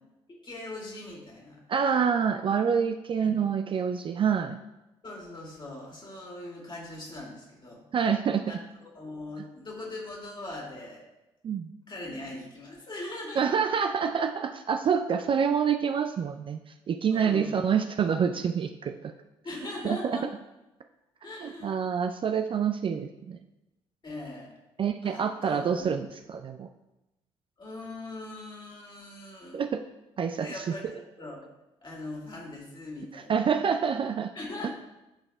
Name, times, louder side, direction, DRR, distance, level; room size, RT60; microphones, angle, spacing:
voice 1, 0.3-1.6 3.2-3.5 5.0-7.8 8.5-8.6 8.9-11.0 11.9-13.4 17.1-17.6 19.4-20.3 21.2-21.8 24.0-24.6 25.0-25.9 27.6-29.6 30.4-31.5 31.8-33.4 34.3-34.7, left 2 dB, 30° left, -1 dB, 2.1 m, -40 dB
voice 2, 1.7-4.6 7.9-8.4 11.4-11.7 13.4-16.6 16.9-19.1 19.8-20.0 21.4-23.4 24.8-26.1 26.3-26.7 29.5-29.8 30.2-30.5 33.3-34.3 34.6-34.7, right 7 dB, 35° right, 7 dB, 0.4 m, -27 dB
11.5 x 4.0 x 2.2 m, 0.96 s
figure-of-eight pair, 45°, 15 cm